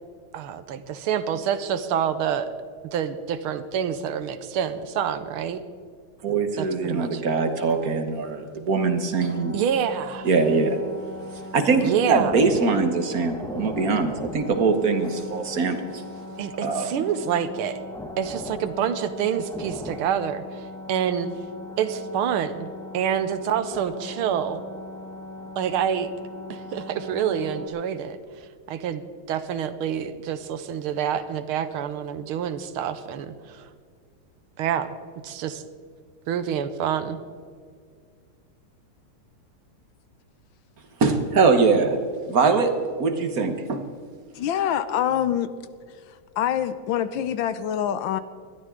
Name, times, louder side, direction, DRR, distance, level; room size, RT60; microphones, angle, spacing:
voice 1, 0.3-2.5 2.9-5.6 6.6-7.2 9.5-10.3 11.8-12.3 16.4-17.8 18.2-21.3 21.8-24.6 25.6-26.1 26.5-29.0 29.3-33.7 34.6-34.9 35.2-35.6 36.3-37.2, right 8 dB, 80° right, 12 dB, 1.7 m, -27 dB
voice 2, 6.2-9.5 10.2-10.8 11.5-16.0 16.6-16.9 41.0-42.0 42.3-42.7 43.0-43.8, right 4 dB, 50° right, 7 dB, 1.5 m, -22 dB
sound 1, 9.1-27.7, left 1 dB, ahead, 1.2 m, -39 dB
voice 3, 44.3-45.5 46.4-48.2, left 10 dB, 70° left, 13 dB, 1.3 m, -25 dB
20.0 x 13.0 x 3.8 m, 2.1 s
omnidirectional pair, 2.3 m